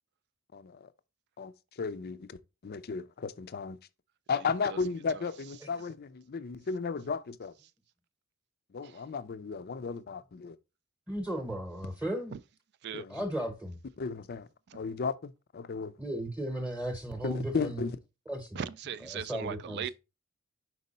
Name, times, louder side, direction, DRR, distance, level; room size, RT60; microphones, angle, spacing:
voice 1, 0.5-0.9 1.4-1.5 1.8-3.8 4.3-7.5 8.7-10.6 12.9-13.2 14.0-14.5 14.7-16.0 17.2-18.0, left 5 dB, 45° left, 0.5 m, -34 dB
voice 2, 11.1-12.4 13.1-13.8 16.0-17.8 18.3-18.6 19.0-19.9, right 1 dB, 5° right, 0.9 m, -35 dB
voice 3, 18.6-19.9, right 8 dB, 50° right, 0.3 m, -38 dB
5.4 x 4.6 x 4.1 m
head